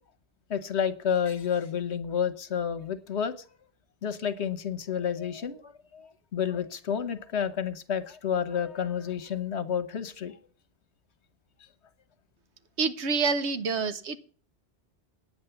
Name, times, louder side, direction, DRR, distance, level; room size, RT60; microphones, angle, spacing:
voice 1, 0.5-3.3 4.0-10.4, left 8 dB, 75° left, 13 dB, 1.3 m, -30 dB
voice 2, 12.8-14.2, right 4 dB, 85° right, 11 dB, 1.2 m, -27 dB
9.5 x 8.3 x 7.0 m, 0.43 s
omnidirectional pair, 1.1 m